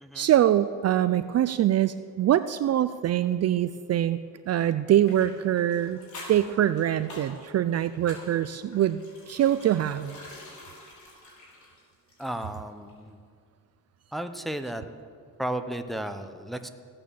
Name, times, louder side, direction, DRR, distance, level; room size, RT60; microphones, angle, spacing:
voice 1, 0.1-4.2 4.5-6.0 6.3-9.0 9.3-10.2, right 11 dB, 50° right, 13 dB, 0.4 m, -24 dB
sound 1, 5.0-12.6 12.9-13.0, left 1 dB, 60° left, 4.1 m, -47 dB
voice 2, 12.2-13.2 14.1-14.8 15.4-16.7, right 1 dB, ahead, 7 dB, 0.7 m, -34 dB
15.5 x 8.9 x 6.9 m, 2.1 s
cardioid pair, 115°, 34 cm